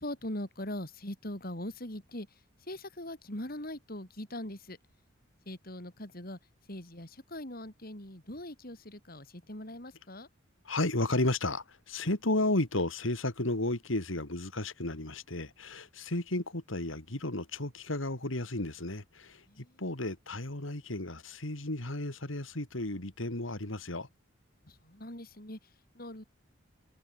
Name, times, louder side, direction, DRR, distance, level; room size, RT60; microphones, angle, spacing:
voice 1, 0.0-2.3 2.7-4.8 5.4-6.4 6.7-10.3 19.5-19.8 24.7-25.6 25.9-26.2, left 1 dB, 50° left, 4.9 m, -41 dB
voice 2, 10.6-19.4 19.8-24.1, left 2 dB, 80° left, 3.1 m, -33 dB
head